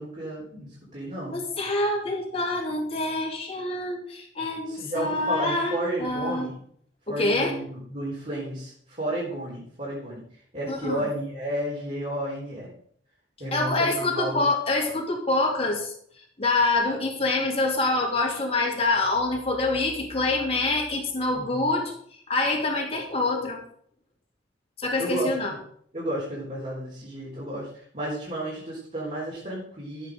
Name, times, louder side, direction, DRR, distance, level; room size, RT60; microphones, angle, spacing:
voice 1, 0.0-1.4 4.7-6.6 7.1-10.2 10.5-12.7 13.4-14.5 21.3-21.7 25.0-25.3 25.9-30.1, right 1 dB, 35° right, -6 dB, 3.9 m, -32 dB
voice 2, 1.3-6.5 7.1-7.5 10.7-11.0 13.5-15.9 16.4-21.9 22.3-23.6 24.8-25.5, left 2 dB, 30° left, 0 dB, 2.9 m, -26 dB
13.5 x 8.6 x 5.2 m, 0.63 s
head